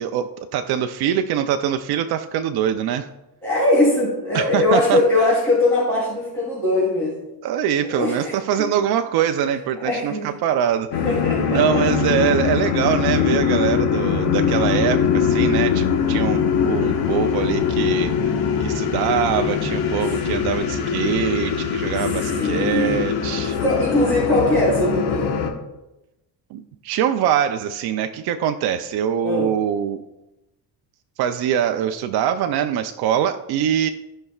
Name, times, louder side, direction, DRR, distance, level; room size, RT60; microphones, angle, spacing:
voice 1, 0.0-3.1 4.3-5.0 7.4-10.9 11.5-18.1 18.6-23.6 26.5-30.0 31.2-33.9, right 9 dB, 70° right, 6 dB, 0.6 m, -23 dB
voice 2, 3.4-7.2 7.9-8.3 8.6-8.7 9.7-10.3 11.0-11.8 20.0-20.4 22.0-23.0 23.5-25.4 29.2-29.5, left 2 dB, 5° left, -10 dB, 3.3 m, -21 dB
sound 1, 10.9-25.5, left 7 dB, 80° left, 1.5 m, -22 dB
16.0 x 5.5 x 2.4 m, 0.96 s
cardioid pair, 125°, 39 cm